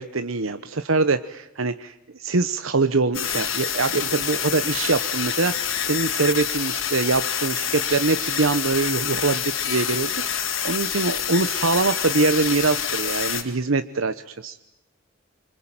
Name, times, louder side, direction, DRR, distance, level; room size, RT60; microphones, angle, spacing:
voice 1, 0.0-1.9 2.2-14.6, right 3 dB, 85° right, 11 dB, 1.0 m, -24 dB
sound 1, 3.1-13.4, left 8 dB, 80° left, 3.7 m, -27 dB
27.0 x 24.5 x 8.9 m, 0.83 s
head